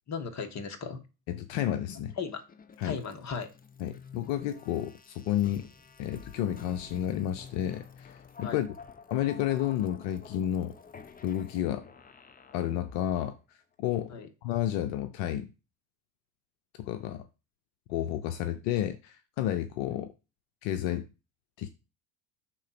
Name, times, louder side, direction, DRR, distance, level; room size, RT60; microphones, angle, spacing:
voice 1, 0.1-1.0 2.2-2.4 2.8-3.5 8.4-8.6 14.1-14.3, left 6 dB, 35° left, 1.5 m, -36 dB
voice 2, 1.3-2.1 2.8-3.0 3.8-5.7 6.0-8.7 9.1-10.7 11.2-11.8 12.5-13.4 13.8-14.1 14.4-15.5 16.8-17.2 17.9-20.1 20.6-21.1 21.6-21.7, left 11 dB, 70° left, 0.8 m, -31 dB
sound 1, 2.1-13.3, left 6 dB, 20° left, 0.6 m, -50 dB
6.5 x 3.8 x 5.9 m
supercardioid pair, 100°, 46 cm